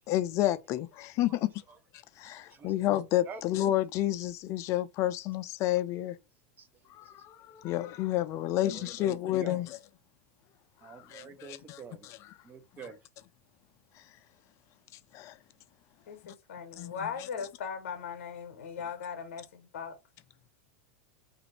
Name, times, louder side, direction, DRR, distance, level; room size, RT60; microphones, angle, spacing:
voice 1, 0.1-1.5 2.2-6.2 6.9-9.7 10.8-11.2 15.1-15.3 16.8-16.9, left 13 dB, 45° left, 0.4 m, -30 dB
voice 2, 2.2-2.7 3.2-3.4 4.2-4.3 6.6-7.3 8.3-9.7 10.8-12.1 12.4-13.0, right 5 dB, 25° right, 0.6 m, -48 dB
voice 3, 16.1-20.0, left 6 dB, 80° left, 0.8 m, -39 dB
2.6 x 2.5 x 2.9 m
hypercardioid pair, 110°, 7 cm